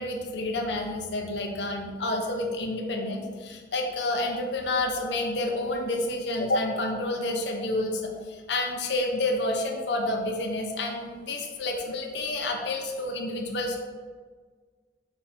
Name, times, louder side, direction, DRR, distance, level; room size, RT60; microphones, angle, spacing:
voice 1, 0.0-13.8, left 2 dB, 70° left, 2 dB, 0.8 m, -29 dB
6.9 x 3.5 x 4.3 m, 1.5 s
head